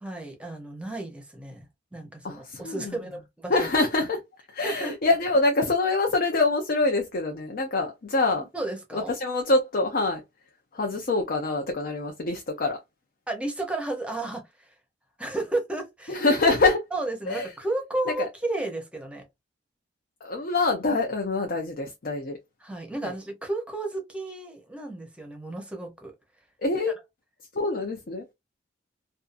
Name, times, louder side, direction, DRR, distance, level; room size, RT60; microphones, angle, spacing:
voice 1, 0.0-1.7 1.9-3.7 4.6-5.0 8.5-9.2 13.3-14.7 15.2-16.2 16.9-19.2 22.6-26.1, right 2 dB, 5° right, 0.7 m, -33 dB
voice 2, 2.2-3.0 3.5-4.2 4.5-8.4 8.9-10.2 10.7-12.8 16.1-16.8 17.3-17.5 18.1-18.3 20.2-22.4 23.0-23.1 26.6-26.9 27.5-28.2, left 3 dB, 50° left, 0.5 m, -25 dB
2.6 x 2.3 x 2.5 m
head